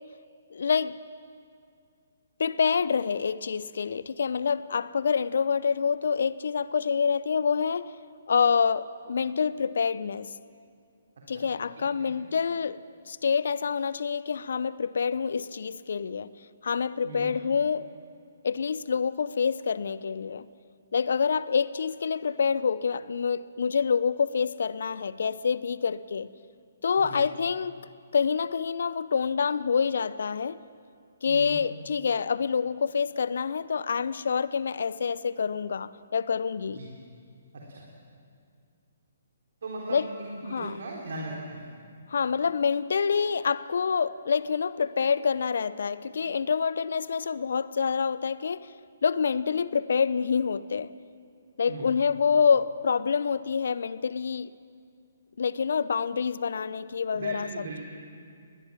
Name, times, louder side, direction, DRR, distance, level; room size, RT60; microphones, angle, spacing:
voice 1, 0.5-1.0 2.4-7.9 8.3-10.3 11.3-12.8 13.1-16.3 16.6-17.9 18.4-20.5 20.9-26.3 26.8-27.8 28.1-30.6 31.2-36.8 39.9-40.1 40.5-40.8 42.1-48.7 49.0-50.9 51.6-54.5 55.4-57.5, left 6 dB, 60° left, 17 dB, 0.7 m, -27 dB
voice 2, 11.8-12.1 17.0-17.3 27.0-27.2 31.3-31.6 36.7-36.9 37.5-37.9 39.6-41.6 51.7-51.9 57.1-57.8, right 2 dB, 60° right, -2 dB, 3.7 m, -38 dB
21.0 x 20.0 x 7.4 m, 2.3 s
figure-of-eight pair, 130°, 0 cm